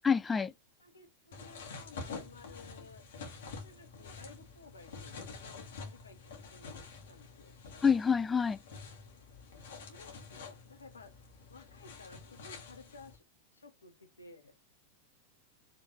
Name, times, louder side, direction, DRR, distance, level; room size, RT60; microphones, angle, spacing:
voice 1, 0.0-0.5 7.8-8.6, left 6 dB, 15° left, 0.4 m, -27 dB
voice 2, 0.8-6.2 6.5-7.6 9.7-11.1 11.5-13.2 13.5-14.5, left 3 dB, 75° left, 1.0 m, -55 dB
sound 1, 1.3-13.2, left 4 dB, 60° left, 1.7 m, -48 dB
4.8 x 3.3 x 3.1 m
figure-of-eight pair, 90°, 0 cm